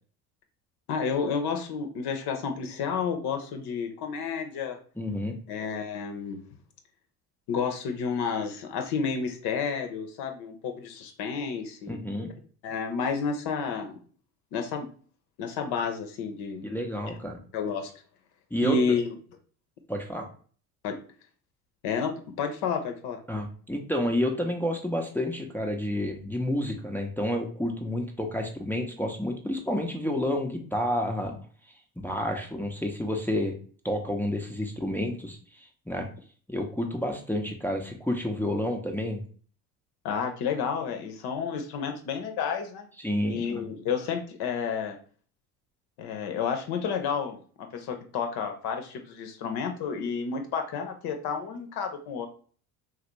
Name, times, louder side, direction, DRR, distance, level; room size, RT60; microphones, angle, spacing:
voice 1, 0.9-4.8 5.5-6.4 7.5-12.1 12.6-14.0 14.5-14.9 15.4-16.7 17.5-17.9 18.6-19.1 20.8-21.0 21.8-23.2 40.0-42.9 43.3-45.0 46.0-52.3, left 5 dB, 55° left, 5 dB, 0.7 m, -30 dB
voice 2, 5.0-5.4 11.9-12.3 16.6-17.4 18.5-19.0 19.9-20.3 23.3-31.4 32.0-33.6 33.8-36.1 36.5-39.2 43.0-43.7, left 1 dB, 5° left, 1 dB, 0.5 m, -30 dB
3.2 x 2.4 x 3.0 m, 0.43 s
hypercardioid pair, 65°, 45 cm